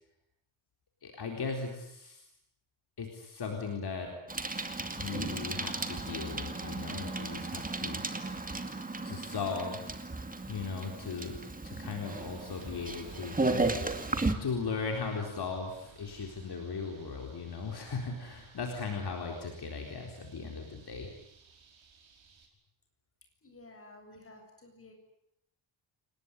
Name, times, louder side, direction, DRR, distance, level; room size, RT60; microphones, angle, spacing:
voice 1, 1.0-2.3 3.0-4.1 5.0-8.1 9.0-10.0 10.5-13.5 14.4-21.1, left 4 dB, 50° left, 2 dB, 4.1 m, -37 dB
Bicycle, 4.3-14.4, right 2 dB, 15° right, 2.3 m, -35 dB
sound 1, 12.1-22.5, right 5 dB, 70° right, 5.6 m, -55 dB
voice 2, 23.4-24.9, left 2 dB, 25° left, 3 dB, 7.6 m, -53 dB
29.5 x 20.0 x 9.9 m, 0.80 s
wide cardioid pair, 175°, 48 cm